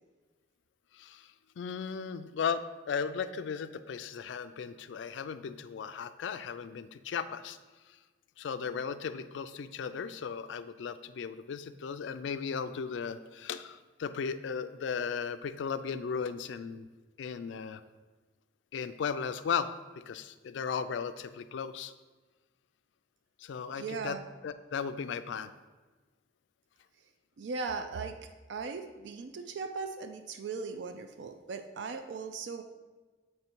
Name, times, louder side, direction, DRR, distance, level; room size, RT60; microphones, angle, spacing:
voice 1, 0.9-7.6 8.4-16.9 17.2-17.8 18.7-19.7 19.9-21.9 23.4-24.2 24.4-25.5, left 6 dB, 75° left, 12 dB, 0.3 m, -36 dB
voice 2, 23.7-24.3 27.4-28.2 28.5-32.6, right 4 dB, 70° right, 7 dB, 0.4 m, -38 dB
8.0 x 3.1 x 4.5 m, 1.3 s
head